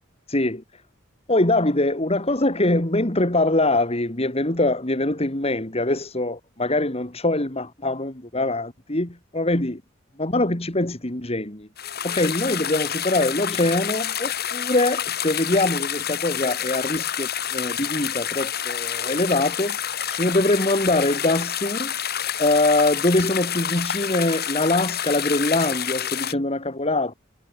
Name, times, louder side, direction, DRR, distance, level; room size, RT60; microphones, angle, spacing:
voice 1, 0.3-0.6 1.3-9.8 10.2-11.7 12.0-19.8 20.1-21.9 22.4-27.2, left 2 dB, 30° left, 2.5 m, -23 dB
sound 1, 11.8-26.3, left 9 dB, 50° left, 4.8 m, -28 dB
head